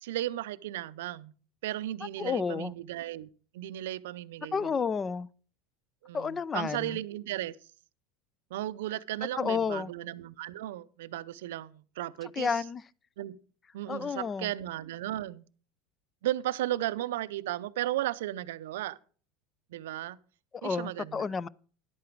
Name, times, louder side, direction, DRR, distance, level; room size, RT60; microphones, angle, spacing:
voice 1, 0.0-1.3 1.6-3.3 3.5-4.7 6.0-7.6 8.5-12.6 13.2-13.4 13.7-15.4 16.2-19.0 19.7-20.2 20.6-21.3, right 14 dB, 80° right, 0.5 m, -35 dB
voice 2, 2.2-2.7 4.5-5.3 6.1-7.0 9.4-9.9 12.4-12.8 13.9-14.5 20.6-21.5, left 5 dB, 25° left, 0.4 m, -31 dB
11.0 x 8.5 x 4.6 m
hypercardioid pair, 100°, 0 cm